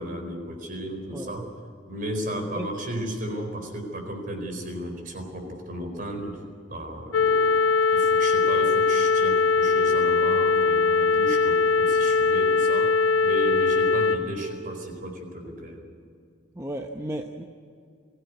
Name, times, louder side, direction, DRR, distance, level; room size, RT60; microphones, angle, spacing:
voice 1, 0.0-1.5 1.9-6.4 6.7-7.6 7.9-12.9 13.2-15.8, right 1 dB, 45° right, 4 dB, 4.4 m, -34 dB
voice 2, 1.1-1.5 2.6-2.7 16.5-17.4, right 1 dB, 15° right, 3 dB, 0.8 m, -34 dB
sound 1, 7.1-14.2, left 4 dB, 80° left, 1.3 m, -21 dB
22.5 x 16.0 x 9.5 m, 2.3 s
head